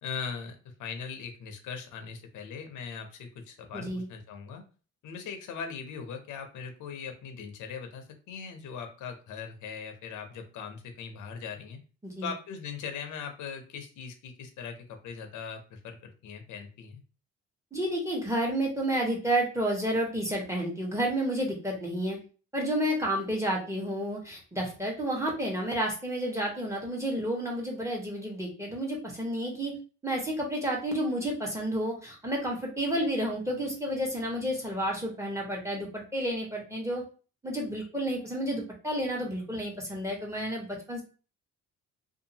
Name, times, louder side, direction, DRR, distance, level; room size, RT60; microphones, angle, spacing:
voice 1, 0.0-4.6 5.0-11.8 12.2-14.8 15.0-17.0, left 6 dB, 80° left, 5 dB, 0.7 m, -40 dB
voice 2, 3.7-4.1 12.0-12.3 17.7-22.2 22.5-29.8 30.0-37.0 37.4-41.0, right 1 dB, 10° right, 0 dB, 1.1 m, -30 dB
2.6 x 2.5 x 2.7 m, 0.37 s
cardioid pair, 90°, 30 cm